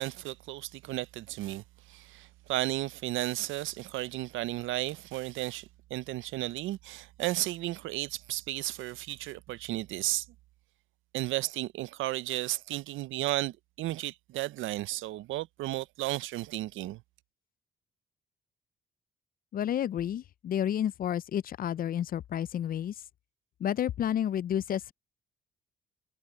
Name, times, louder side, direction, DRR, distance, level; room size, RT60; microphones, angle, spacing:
voice 1, 0.0-10.3 11.1-17.0, right 16 dB, 80° right, 0.5 m, -34 dB
voice 2, 19.5-22.9 23.6-24.9, left 10 dB, 45° left, 0.4 m, -30 dB
cardioid pair, 90°, 20 cm